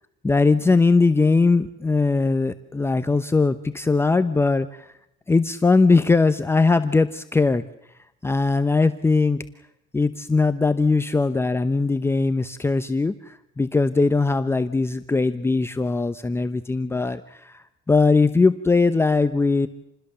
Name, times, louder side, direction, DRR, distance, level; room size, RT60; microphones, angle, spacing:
voice 1, 0.2-4.9 5.3-7.6 8.2-9.4 9.9-19.7, left 3 dB, 15° left, 10 dB, 0.9 m, -20 dB
28.0 x 20.5 x 6.9 m, 0.82 s
cardioid pair, 130°, 19 cm